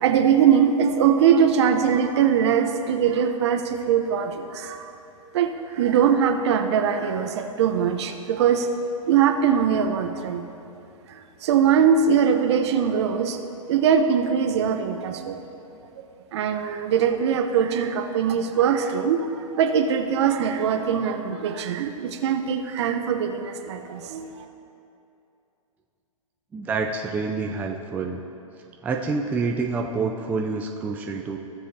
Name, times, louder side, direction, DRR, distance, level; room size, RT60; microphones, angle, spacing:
voice 1, 0.0-4.9 5.3-8.7 9.1-10.4 11.1-13.4 13.7-15.4 16.3-19.2 19.5-24.4, right 7 dB, 50° right, 5 dB, 0.8 m, -21 dB
voice 2, 26.5-28.2 28.8-31.4, right 4 dB, 10° right, 1 dB, 0.4 m, -27 dB
16.0 x 7.4 x 2.7 m, 2.8 s
figure-of-eight pair, 115°, 18 cm